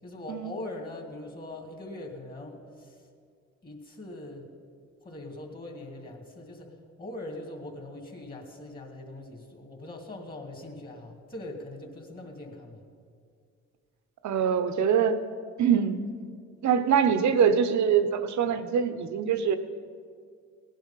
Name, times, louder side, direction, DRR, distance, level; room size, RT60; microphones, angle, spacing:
voice 1, 0.0-3.1 3.6-4.5 5.0-12.8, left 2 dB, 30° left, 2 dB, 2.5 m, -41 dB
voice 2, 14.2-15.2 15.6-16.0 16.6-19.6, right 7 dB, 70° right, 11 dB, 1.0 m, -24 dB
17.0 x 10.5 x 5.7 m, 2.2 s
cardioid pair, 90°, 30 cm